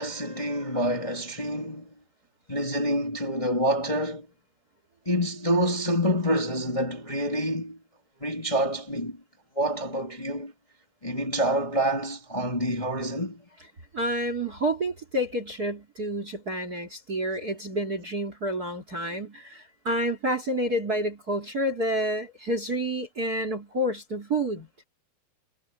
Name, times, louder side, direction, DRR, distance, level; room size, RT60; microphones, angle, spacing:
voice 1, 0.0-1.9 2.5-4.2 5.1-7.8 8.2-9.2 9.6-10.5 11.0-13.4, equal, 10° left, 2.8 m, -27 dB
voice 2, 13.9-24.7, right 1 dB, 25° right, 3.0 m, -29 dB
omnidirectional pair, 4.4 m